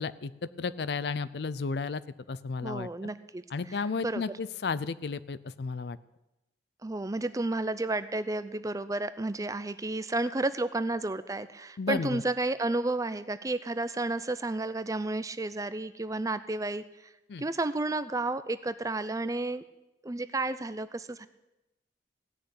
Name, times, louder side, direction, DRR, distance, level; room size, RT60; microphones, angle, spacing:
voice 1, 0.0-2.0 2.3-2.9 3.5-6.0 11.8-12.2 17.3-17.4, left 4 dB, 65° left, 17 dB, 0.5 m, -33 dB
voice 2, 2.6-3.8 4.0-4.3 6.8-16.8 17.4-19.6 20.0-21.3, right 2 dB, 20° right, 13 dB, 0.5 m, -32 dB
16.0 x 6.6 x 9.5 m, 0.96 s
head